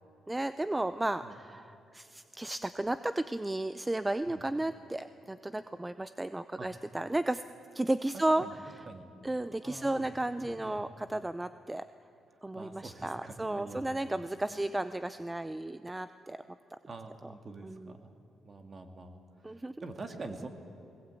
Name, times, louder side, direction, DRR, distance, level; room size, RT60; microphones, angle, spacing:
voice 1, 0.3-7.4 7.7-8.9 9.2-11.9 12.4-16.4 16.7-16.8 17.6-17.9 19.4-19.7, right 1 dB, 10° right, 12 dB, 0.5 m, -33 dB
voice 2, 9.6-10.1 10.4-10.9 12.5-14.0 14.5-14.8 16.9-18.1 18.4-20.5, right 3 dB, 40° right, 5 dB, 2.1 m, -45 dB
19.5 x 19.0 x 8.3 m, 2.9 s
cardioid pair, 90°, 0 cm